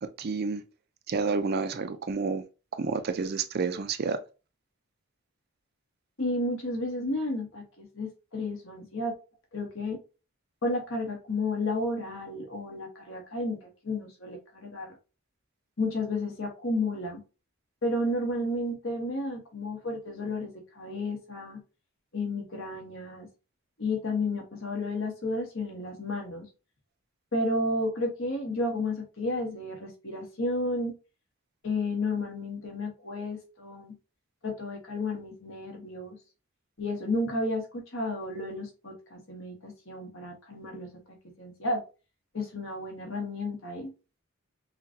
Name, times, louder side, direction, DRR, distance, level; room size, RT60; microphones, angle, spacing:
voice 1, 0.0-0.6 1.1-2.4 2.7-4.2, right 4 dB, 45° right, 0.4 m, -29 dB
voice 2, 6.2-9.1 9.5-10.0 10.6-15.0 15.8-17.2 17.8-21.6 22.1-23.3 23.8-26.5 27.3-30.9 31.6-33.9 34.4-36.2 36.8-40.9 41.4-41.8 42.3-43.9, left 2 dB, 65° left, 1.3 m, -32 dB
5.6 x 2.3 x 2.8 m
head